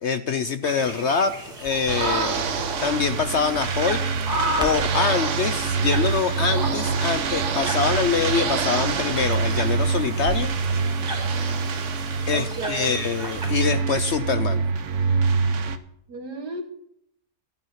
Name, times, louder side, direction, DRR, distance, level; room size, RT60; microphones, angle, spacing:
voice 1, 0.0-1.3 1.6-4.1 4.6-10.5 12.3-14.6, left 5 dB, 60° left, 11 dB, 0.7 m, -25 dB
sound 1, 0.6-13.7, right 1 dB, 25° right, 3.1 m, -34 dB
Crackle, 1.3-10.5, equal, 5° right, 1.4 m, -42 dB
sound 2, 1.9-15.8, right 5 dB, 55° right, 1.1 m, -25 dB
voice 2, 12.3-13.4 16.1-16.6, right 3 dB, 85° right, 3 dB, 2.4 m, -34 dB
13.0 x 9.3 x 5.7 m, 0.70 s
omnidirectional pair, 1.7 m